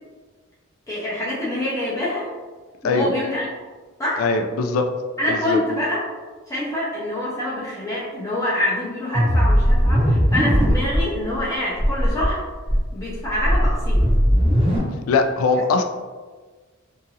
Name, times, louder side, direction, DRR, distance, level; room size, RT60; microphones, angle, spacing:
voice 1, 0.9-2.3 2.8-3.5 4.0-4.2 5.2-6.0 6.5-12.4 12.9-14.0, left 1 dB, 15° left, -8 dB, 0.5 m, -25 dB
voice 2, 4.2-4.9 5.3-5.6 15.1-15.8, left 4 dB, 85° left, 6 dB, 0.3 m, -21 dB
sound 1, 9.1-11.0 11.4-11.5 11.7-12.3 12.7-14.8, equal, 30° right, 0.8 m, -18 dB
2.7 x 2.5 x 2.7 m, 1.4 s
head